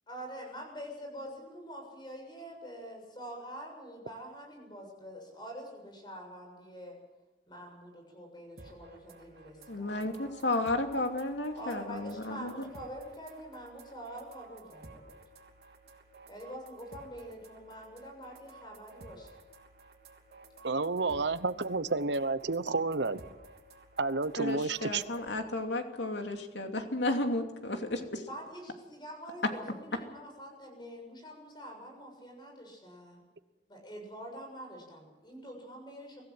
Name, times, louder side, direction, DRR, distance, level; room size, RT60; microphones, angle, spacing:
voice 1, 0.1-7.0 7.5-10.6 11.6-15.0 16.3-19.4 28.3-33.2 33.7-36.2, equal, 25° left, 2 dB, 7.2 m, -46 dB
sound 1, 8.6-25.3, right 2 dB, 65° right, 2.9 m, -54 dB
voice 2, 9.7-12.5 24.4-28.2, left 2 dB, 90° left, 4 dB, 2.8 m, -33 dB
voice 3, 20.6-23.2 24.0-25.0, right 3 dB, 80° right, 13 dB, 1.0 m, -30 dB
24.5 x 16.0 x 7.9 m, 1.1 s
head